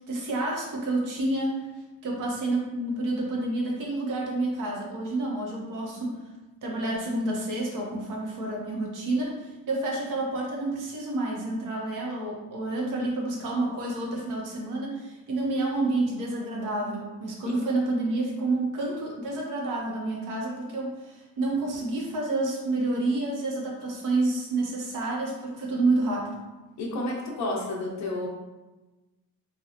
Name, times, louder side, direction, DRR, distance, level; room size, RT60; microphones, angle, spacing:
voice 1, 0.1-1.7 2.0-6.3 6.6-26.4, right 2 dB, 55° right, -2 dB, 0.8 m, -29 dB
voice 2, 26.8-28.3, left 1 dB, 50° left, -2 dB, 0.7 m, -30 dB
4.2 x 2.3 x 2.5 m, 1.1 s
cardioid pair, 175°, 37 cm